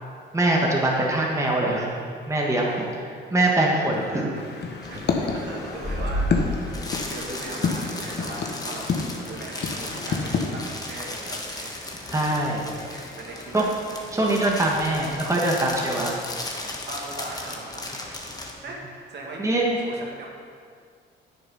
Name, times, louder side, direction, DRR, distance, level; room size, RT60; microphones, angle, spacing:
voice 1, 0.3-1.9 2.3-2.7 3.3-4.3 12.1-12.7 13.5-13.7 14.1-16.1 19.4-19.8, right 1 dB, 15° right, -2 dB, 1.5 m, -23 dB
voice 2, 2.6-3.6 3.9-4.4 4.9-6.5 6.8-12.0 12.5-13.7 14.1-14.2 14.7-14.9 16.9-18.3 18.6-20.3, right 2 dB, 60° right, -2 dB, 2.1 m, -39 dB
sound 1, 4.4-10.6, left 5 dB, 55° left, 1.2 m, -29 dB
sound 2, 4.8-18.5, left 1 dB, 20° left, 1.4 m, -34 dB
9.5 x 6.8 x 5.5 m, 2.1 s
cardioid pair, 90°, 20 cm